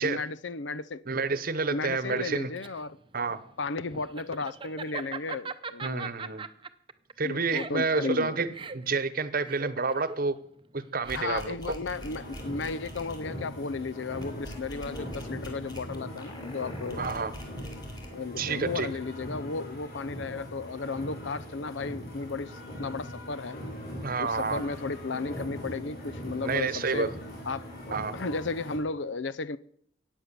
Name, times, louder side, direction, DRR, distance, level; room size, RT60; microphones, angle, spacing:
voice 1, 0.0-1.0 1.7-3.0 3.6-6.1 7.2-8.4 11.1-17.1 18.1-23.6 24.2-27.1 27.5-29.6, left 4 dB, 75° left, 0.7 m, -34 dB
voice 2, 1.1-2.5 3.1-3.4 5.8-6.5 7.2-8.5 8.7-10.4 10.7-11.7 17.0-17.3 18.4-18.9 24.0-24.6 26.4-27.1 27.9-28.1, right 4 dB, 50° right, 1.0 m, -29 dB
Laughter, 2.2-11.6, right 4 dB, 30° right, 0.7 m, -40 dB
sound 1, 11.0-13.2 14.2-18.1, equal, 20° left, 3.0 m, -45 dB
sound 2, 11.9-28.8, equal, 55° left, 4.9 m, -41 dB
15.0 x 9.3 x 6.9 m
head